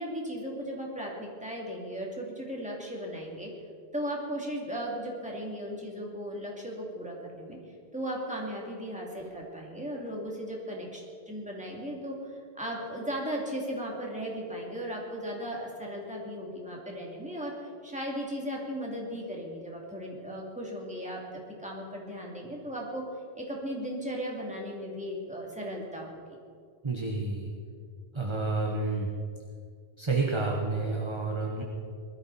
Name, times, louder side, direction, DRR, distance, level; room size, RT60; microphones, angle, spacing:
voice 1, 0.0-3.5 3.9-7.6 7.9-17.5 17.8-23.0 23.4-26.2, equal, 5° right, -3 dB, 2.8 m, -36 dB
voice 2, 26.8-27.5 28.1-29.1 30.0-31.6, right 3 dB, 25° right, 0 dB, 1.3 m, -29 dB
21.0 x 13.0 x 4.2 m, 2.3 s
omnidirectional pair, 1.1 m